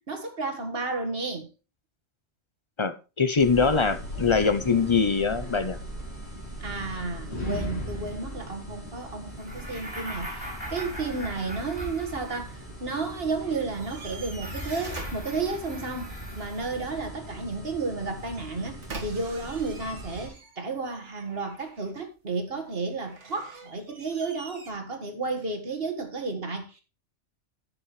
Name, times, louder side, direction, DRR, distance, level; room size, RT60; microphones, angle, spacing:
voice 1, 0.0-1.5 6.6-26.8, right 3 dB, 50° right, 1.9 m, -32 dB
voice 2, 2.8-5.8, left 5 dB, 35° left, 0.5 m, -23 dB
sound 1, 3.4-20.3, equal, 60° left, 3.6 m, -39 dB
sound 2, 9.4-12.6 13.7-16.9, equal, 5° right, 3.5 m, -40 dB
sound 3, 13.4-16.0 18.3-20.8 21.1-22.0 23.0-24.7, right 3 dB, 70° right, 2.0 m, -44 dB
14.5 x 6.0 x 3.1 m
omnidirectional pair, 1.2 m